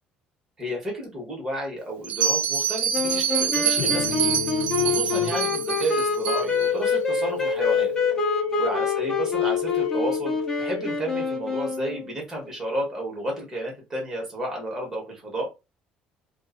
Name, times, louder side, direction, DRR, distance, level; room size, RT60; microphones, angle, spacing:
voice 1, 0.6-7.9 8.6-15.5, right 1 dB, 20° right, -1 dB, 1.2 m, -32 dB
Bell, 2.0-6.7, right 7 dB, 45° right, 0.6 m, -26 dB
sound 1, 2.9-12.1, left 5 dB, 15° left, 0.6 m, -26 dB
sound 2, 3.8-11.7, left 7 dB, 80° left, 0.5 m, -32 dB
2.5 x 2.3 x 2.5 m, 0.25 s
cardioid pair, 165°, 3 cm